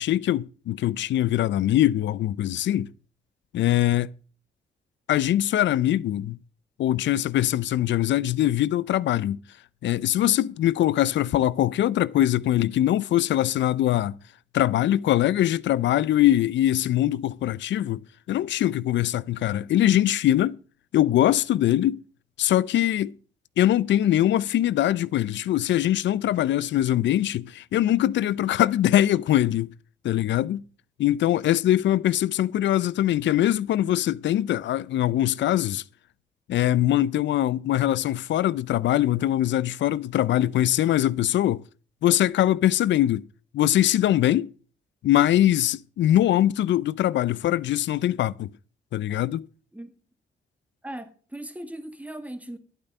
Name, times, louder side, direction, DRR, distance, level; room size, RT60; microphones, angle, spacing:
voice 1, 0.0-2.9 3.5-4.1 5.1-6.4 6.8-9.4 9.8-14.2 14.5-18.0 18.3-20.6 20.9-22.0 22.4-23.1 23.6-29.7 30.0-30.6 31.0-35.8 36.5-41.6 42.0-43.2 43.5-44.5 45.0-48.5 48.9-49.4, left 13 dB, 85° left, 0.5 m, -22 dB
voice 2, 50.8-52.6, right 1 dB, 10° right, 1.8 m, -38 dB
11.0 x 8.7 x 5.4 m
cardioid pair, 75°, 18 cm